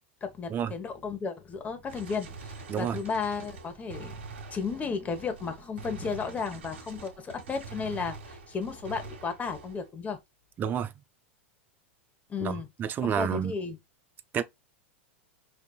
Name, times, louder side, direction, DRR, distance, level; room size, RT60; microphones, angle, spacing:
voice 1, 0.2-4.2 4.5-10.2 12.3-12.7 13.0-13.8, left 5 dB, 20° left, 1.2 m, -34 dB
Gunshot gunfire, 1.9-9.9, right 4 dB, 75° right, 1.3 m, -45 dB
voice 2, 10.6-10.9 12.4-13.5 14.3-14.4, right 8 dB, 30° right, 0.6 m, -29 dB
5.5 x 2.7 x 2.3 m
hypercardioid pair, 105°, 7 cm